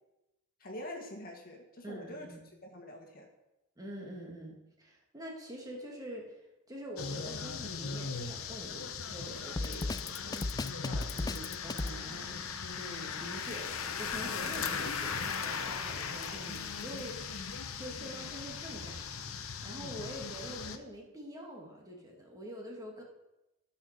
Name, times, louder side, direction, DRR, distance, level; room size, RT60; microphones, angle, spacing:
voice 1, 0.6-2.3 2.6-3.3 11.2-11.4, left 1 dB, 45° left, 1 dB, 1.7 m, -45 dB
voice 2, 1.8-2.4 3.8-6.4 6.7-23.0, equal, 15° right, -1 dB, 2.1 m, -46 dB
sound 1, 7.0-20.8, left 6 dB, 85° left, 0.9 m, -38 dB
Drum kit, 9.6-12.0, left 2 dB, 20° left, 0.4 m, -34 dB
13.5 x 5.7 x 6.6 m, 0.96 s
head